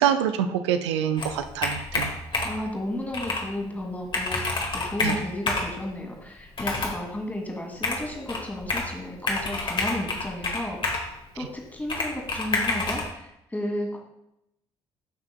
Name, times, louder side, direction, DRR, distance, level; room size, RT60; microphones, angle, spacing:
voice 1, 0.0-2.5 5.0-5.2, right 9 dB, 70° right, 10 dB, 0.5 m, -26 dB
Computer keyboard, 1.2-2.7 3.1-3.5 3.8-3.9 4.1-5.7 6.5-7.0 7.8-8.9 9.3-11.1 11.9-13.1, left 3 dB, 35° left, 1.8 m, -28 dB
voice 2, 2.4-11.1 11.4-14.0, left 1 dB, 10° left, 1 dB, 2.1 m, -33 dB
13.5 x 5.9 x 2.2 m, 0.83 s
figure-of-eight pair, 50°, 15 cm